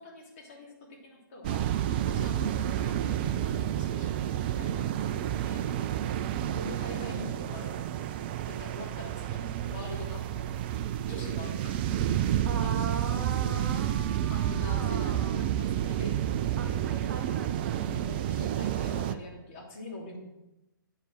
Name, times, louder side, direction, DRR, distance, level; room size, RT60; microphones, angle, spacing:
voice 1, 0.0-5.7 6.5-8.1 8.5-9.4 9.7-10.6 11.1-13.6 14.3-17.2 17.8-20.2, left 2 dB, 35° left, -1 dB, 3.0 m, -44 dB
sound 1, 1.4-19.1, right 11 dB, 30° right, 0.4 m, -30 dB
voice 2, 6.5-7.5 9.3-10.0 10.3-10.4 12.4-15.5 16.6-17.9, right 5 dB, 50° right, 4 dB, 1.4 m, -41 dB
8.7 x 6.7 x 6.4 m, 0.93 s
figure-of-eight pair, 125°, 11 cm